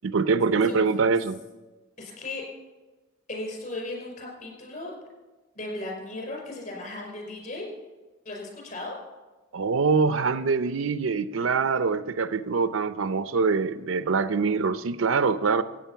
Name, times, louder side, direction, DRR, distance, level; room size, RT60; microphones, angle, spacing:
voice 1, 0.0-1.4 9.5-15.6, right 4 dB, 75° right, 12 dB, 0.6 m, -24 dB
voice 2, 2.0-2.4 3.3-4.9 5.6-7.7 8.3-9.0, left 2 dB, 45° left, 0 dB, 5.2 m, -36 dB
15.0 x 9.0 x 5.7 m, 1.2 s
head